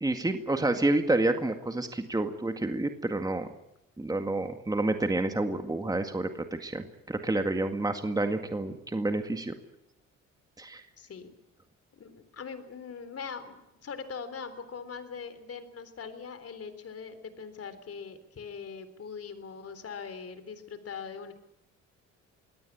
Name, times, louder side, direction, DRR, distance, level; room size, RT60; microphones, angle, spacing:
voice 1, 0.0-3.5 4.0-6.3 6.6-9.5 10.6-10.8, right 2 dB, 10° right, 7 dB, 2.0 m, -29 dB
voice 2, 11.0-11.3 12.0-21.3, left 6 dB, 50° left, 11 dB, 3.8 m, -41 dB
24.0 x 17.5 x 8.6 m, 0.84 s
cardioid pair, 90°, 30 cm